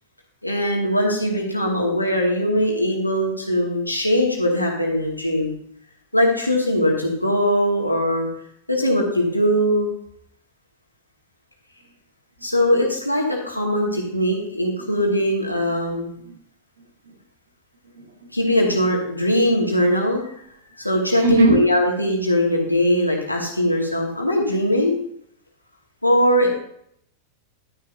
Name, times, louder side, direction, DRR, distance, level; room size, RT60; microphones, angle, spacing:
voice 1, 0.4-5.5 6.1-8.3 8.7-9.9 12.4-16.1 18.3-20.3 20.8-25.0 26.0-26.5, equal, 85° left, -1 dB, 2.4 m, -20 dB
voice 2, 16.8-17.2 17.8-18.4 21.2-21.6, right 3 dB, 65° right, 0 dB, 2.7 m, -22 dB
12.0 x 10.5 x 2.8 m, 0.69 s
figure-of-eight pair, 90°, 0 cm